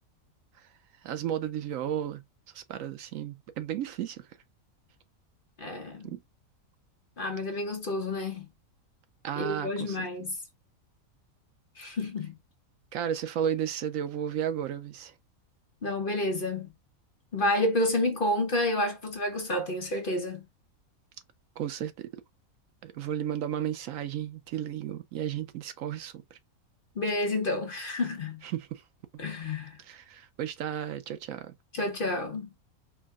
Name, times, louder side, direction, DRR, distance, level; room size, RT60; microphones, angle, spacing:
voice 1, 1.0-2.2 2.5-4.2 6.0-6.2 9.2-10.0 12.9-15.1 21.6-22.1 22.8-26.4 28.4-28.8 29.8-31.5, right 10 dB, 70° right, 0.9 m, -33 dB
voice 2, 5.6-6.1 7.2-8.5 9.4-10.4 11.8-12.4 15.8-16.7 17.3-20.4 27.0-28.4 29.2-29.8 31.7-32.5, left 1 dB, 45° left, 0.9 m, -29 dB
4.6 x 2.3 x 3.5 m
omnidirectional pair, 1.5 m